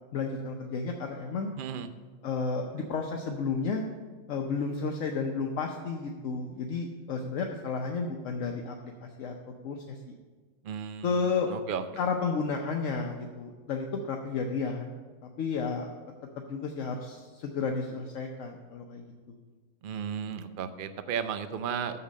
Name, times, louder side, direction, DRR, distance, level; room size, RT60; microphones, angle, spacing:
voice 1, 0.1-1.5 2.2-3.8 4.3-8.7 9.2-9.3 9.6-10.1 11.0-11.5 12.0-15.0 15.4-15.9 16.5-19.4, left 4 dB, 70° left, 2 dB, 1.1 m, -32 dB
voice 2, 1.6-1.9 10.6-11.8 19.8-22.0, right 7 dB, 50° right, 10 dB, 0.7 m, -34 dB
6.9 x 6.8 x 7.4 m, 1.4 s
omnidirectional pair, 1.4 m